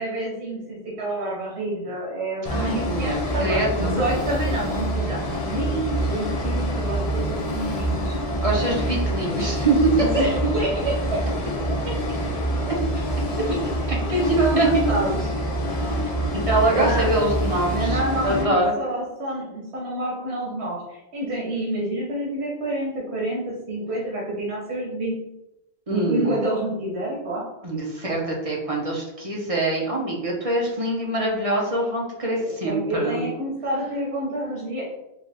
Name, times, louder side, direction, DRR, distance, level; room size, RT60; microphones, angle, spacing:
voice 1, 0.0-8.2 10.0-11.2 11.8-11.9 13.5-13.6 14.1-15.3 16.7-17.2 17.7-25.2 25.9-27.6 32.3-34.9, right 1 dB, 85° right, -4 dB, 1.3 m, -28 dB
sound 1, 2.4-18.4, right 1 dB, 45° left, 0.6 m, -26 dB
voice 2, 2.5-3.9 8.4-10.2 14.1-14.2 14.6-14.7 16.5-18.7 25.9-26.3 27.6-33.2, right 2 dB, 35° right, -2 dB, 0.9 m, -24 dB
4.6 x 2.6 x 3.5 m, 0.90 s
omnidirectional pair, 1.1 m